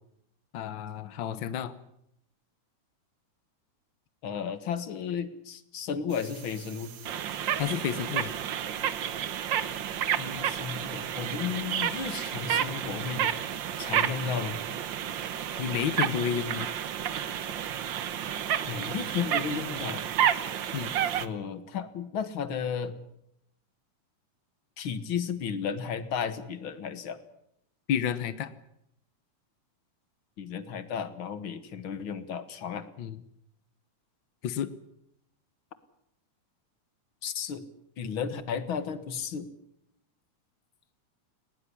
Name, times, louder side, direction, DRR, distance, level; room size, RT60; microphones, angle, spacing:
voice 1, 0.5-1.7 7.6-8.3 15.6-16.7 20.7-20.9 27.9-28.5 33.0-33.2 34.4-34.7, left 9 dB, 85° left, 14 dB, 1.0 m, -30 dB
voice 2, 4.2-6.9 10.2-13.3 13.8-14.6 18.7-20.0 21.2-23.0 24.8-27.2 30.4-32.9 37.2-37.7 38.0-39.5, left 7 dB, 50° left, 12 dB, 1.8 m, -34 dB
sound 1, 6.1-21.3, right 9 dB, 75° right, 1.0 m, -31 dB
20.0 x 18.5 x 9.9 m, 0.76 s
omnidirectional pair, 3.6 m